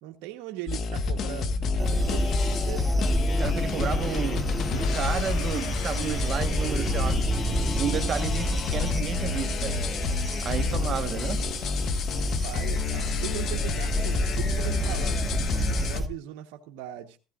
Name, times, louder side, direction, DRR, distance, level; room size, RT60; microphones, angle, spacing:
voice 1, 0.0-3.1 12.2-15.2 15.7-17.2, right 14 dB, 75° right, 1.1 m, -39 dB
sound 1, 0.7-16.0, left 4 dB, 50° left, 1.5 m, -29 dB
sound 2, 1.8-16.1, right 1 dB, 10° right, 1.3 m, -30 dB
voice 2, 3.4-9.8 10.4-11.4, right 8 dB, 40° right, 1.3 m, -32 dB
Domestic sounds home sounds, 4.6-9.0, left 8 dB, 65° left, 2.3 m, -44 dB
16.0 x 14.5 x 2.5 m
supercardioid pair, 110°, 0 cm